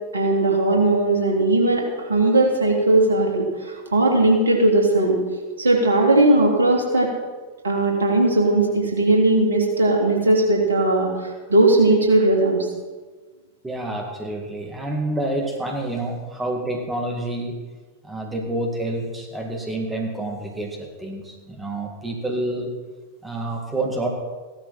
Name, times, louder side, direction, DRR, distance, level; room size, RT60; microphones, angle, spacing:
voice 1, 0.1-5.2 5.6-7.1 7.6-12.6, right 2 dB, 70° right, 0 dB, 3.1 m, -18 dB
voice 2, 13.6-17.6 18.0-22.7 23.2-24.1, right 1 dB, 10° right, 0 dB, 2.4 m, -28 dB
16.0 x 12.0 x 4.4 m, 1.3 s
figure-of-eight pair, 90°, 0 cm